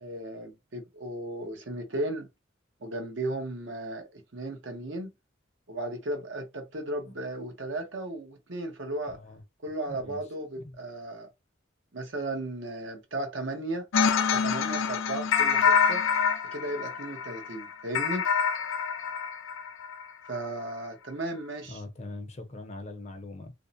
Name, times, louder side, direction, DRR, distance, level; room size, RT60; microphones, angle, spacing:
voice 1, 0.0-2.3 2.8-5.1 5.7-9.2 9.6-11.3 11.9-13.9 14.3-16.0 16.5-18.3 20.3-21.8, right 1 dB, 70° right, 0.8 m, -35 dB
voice 2, 9.1-9.4 9.9-10.2 10.6-10.8 21.6-23.5, left 2 dB, 35° left, 0.6 m, -42 dB
sound 1, 13.9-20.1, left 6 dB, 85° left, 0.4 m, -26 dB
2.7 x 2.0 x 2.6 m
head